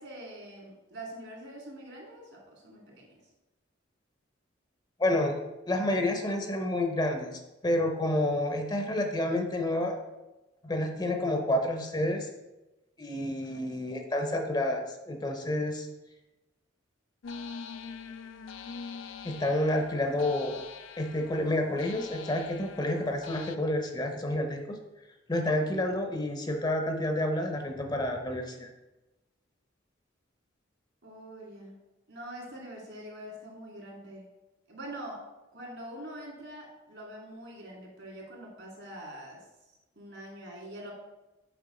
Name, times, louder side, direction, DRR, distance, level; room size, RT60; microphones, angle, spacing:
voice 1, 0.0-3.2 13.4-14.0 31.0-31.8 32.1-34.2 34.7-35.2 35.5-39.5 40.0-40.9, right 1 dB, 70° right, -2 dB, 2.1 m, -44 dB
voice 2, 5.0-5.4 5.7-10.0 10.6-12.3 13.0-15.9 19.2-20.6 21.0-24.8 25.3-28.7, left 1 dB, 20° left, 4 dB, 0.6 m, -29 dB
sound 1, 17.2-23.6, left 5 dB, 80° left, 0.4 m, -44 dB
6.7 x 4.5 x 3.7 m, 1.0 s
head